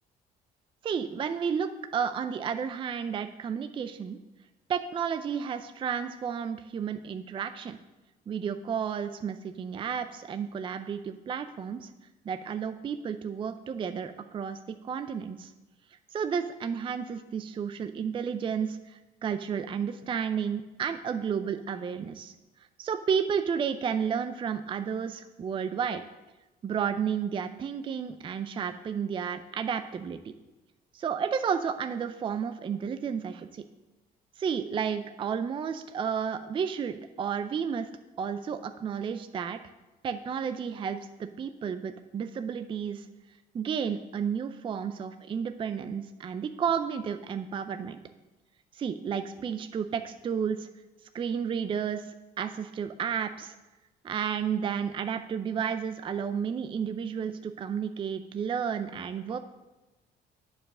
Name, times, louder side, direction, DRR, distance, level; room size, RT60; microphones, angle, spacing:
voice 1, 0.8-4.2 4.7-7.8 8.3-11.9 12.3-14.6 14.8-15.5 16.1-22.3 22.8-26.0 26.6-30.2 30.9-33.6 34.4-37.9 38.2-39.6 40.0-43.1 43.5-48.0 48.7-50.7 51.1-52.1 52.4-53.5 54.0-59.4, right 7 dB, 30° right, 9 dB, 0.4 m, -32 dB
8.8 x 4.8 x 6.1 m, 1.1 s
cardioid pair, 110°, 17 cm